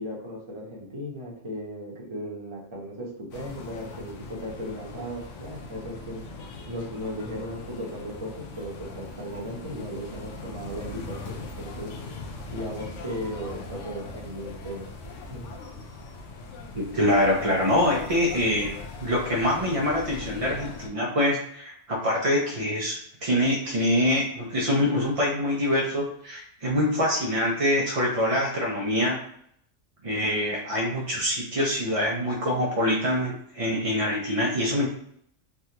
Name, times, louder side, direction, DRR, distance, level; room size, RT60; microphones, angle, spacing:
voice 1, 0.0-6.2 6.7-11.9 12.5-14.8 15.3-15.5, equal, 30° right, -5 dB, 0.7 m, -36 dB
sound 1, 3.3-20.9, left 3 dB, 85° left, 0.9 m, -40 dB
voice 2, 16.7-18.7 19.0-29.2 30.0-34.9, left 1 dB, 50° right, -3 dB, 0.4 m, -25 dB
3.4 x 2.3 x 2.8 m, 0.66 s
omnidirectional pair, 1.2 m